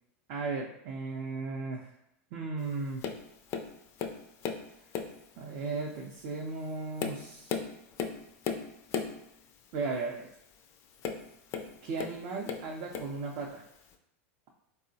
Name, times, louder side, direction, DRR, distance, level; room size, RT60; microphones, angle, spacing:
voice 1, 0.3-1.9 2.3-3.0 5.4-7.5 9.7-10.3 11.8-13.6, right 3 dB, 50° right, -1 dB, 0.4 m, -36 dB
Tap, 3.0-3.2 3.5-4.7 4.9-5.3 5.9-6.1 6.6-9.2 11.0-12.2 12.5-13.2 13.9-14.0, left 6 dB, 40° left, 0.3 m, -36 dB
3.7 x 2.0 x 2.6 m, 0.81 s
supercardioid pair, 120°, 8 cm